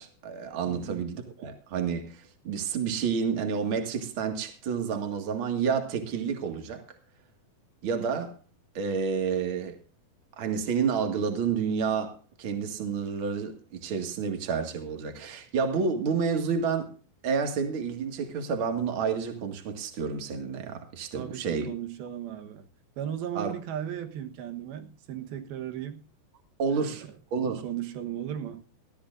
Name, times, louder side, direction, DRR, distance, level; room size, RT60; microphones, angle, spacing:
voice 1, 0.0-6.8 7.8-8.3 8.7-9.8 10.4-16.9 17.2-21.7 23.3-23.5 26.6-27.6, right 6 dB, 40° right, 2.4 m, -30 dB
voice 2, 0.7-1.0 21.1-22.7 23.0-26.0 26.7-26.9 27.6-28.6, right 10 dB, 90° right, 3.2 m, -36 dB
19.5 x 13.5 x 2.6 m
omnidirectional pair, 4.2 m